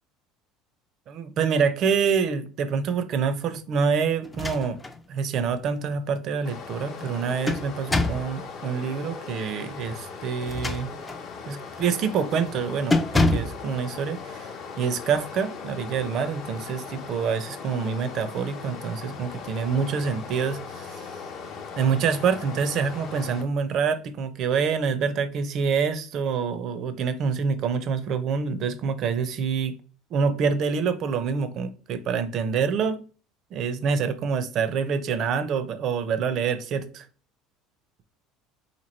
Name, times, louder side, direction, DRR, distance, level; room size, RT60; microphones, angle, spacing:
voice 1, 1.1-4.8 5.1-10.9 11.5-14.5 14.8-21.1 21.8-29.7 30.1-33.0 33.5-37.0, right 6 dB, 45° right, 12 dB, 0.5 m, -26 dB
sound 1, 4.2-5.0 5.4-5.5 7.0-8.3 10.4-11.3 11.8-12.0 12.3-12.5 12.9-13.6, left 2 dB, 15° left, 0.3 m, -26 dB
Stream, 6.4-23.4, left 5 dB, 50° left, 0.7 m, -39 dB
3.0 x 2.6 x 4.0 m, 0.38 s
cardioid pair, 130°, 0 cm